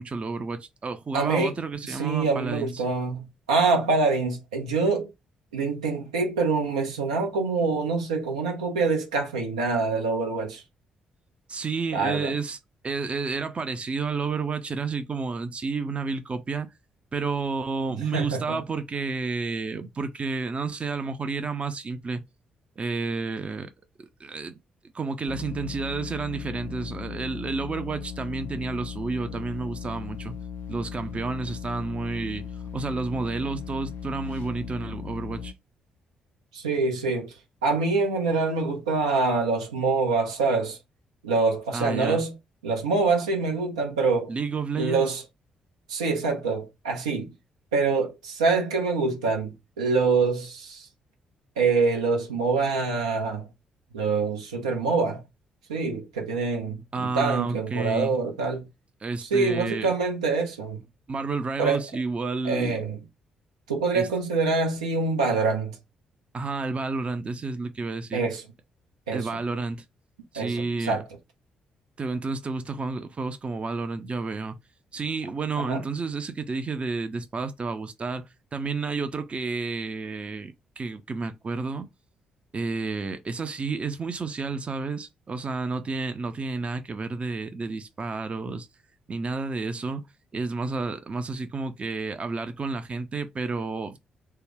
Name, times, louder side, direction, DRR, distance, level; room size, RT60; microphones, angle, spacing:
voice 1, 0.0-2.8 11.5-12.6 12.8-16.7 17.1-22.2 22.8-23.7 24.2-24.5 24.9-30.3 30.7-32.5 32.7-35.5 41.7-42.2 44.3-45.1 56.9-58.2 59.0-59.9 61.1-62.8 63.9-64.1 66.3-68.2 69.1-69.9 70.3-71.0 72.0-74.6 74.9-81.9 82.5-88.7 89.1-90.0 90.3-94.0, right 4 dB, 35° right, 0.5 m, -30 dB
voice 2, 1.1-1.5 1.9-5.1 5.5-10.6 11.9-12.3 18.0-18.6 36.5-37.3 37.6-40.8 41.2-42.3 42.6-44.3 44.8-45.2 45.9-47.3 47.7-50.9 51.6-53.5 53.9-55.2 55.7-58.7 59.2-60.8 61.6-61.8 62.4-63.0 63.7-65.8 68.1-68.4 69.1-69.3 70.4-71.0 75.6-75.8, right 4 dB, 85° right, 0.7 m, -25 dB
sound 1, 25.3-35.5, left 7 dB, 65° left, 0.3 m, -37 dB
3.3 x 2.1 x 3.4 m
figure-of-eight pair, 40°, 3 cm